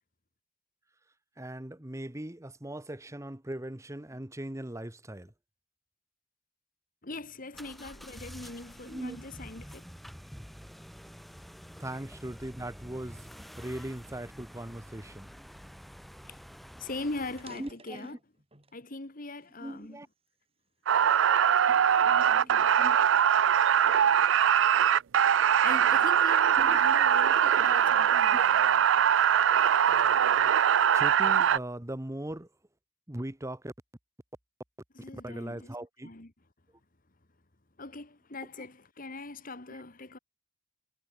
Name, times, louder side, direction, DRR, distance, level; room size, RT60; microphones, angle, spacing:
voice 1, 1.4-5.3 8.9-9.2 11.8-13.3 13.6-15.3 17.6-18.1 19.6-20.1 22.4-23.0 26.6-26.8 28.3-28.4 30.9-32.5 33.1-33.7 35.1-36.1 39.7-39.8, right 1 dB, 15° right, 1.2 m, -39 dB
voice 2, 7.0-9.9 16.3-16.4 16.8-18.2 18.7-20.0 21.7-22.7 25.6-28.6 28.9-29.1 34.9-35.7 36.0-36.3 37.8-40.2, left 2 dB, 45° left, 1.9 m, -41 dB
sound 1, 7.5-17.7, equal, ahead, 4.8 m, -48 dB
sound 2, 17.4-18.8 19.4-20.7 21.2-21.5 22.1-24.2, right 2 dB, 30° right, 4.1 m, -56 dB
sound 3, 20.9-31.6, right 9 dB, 75° right, 0.4 m, -22 dB
head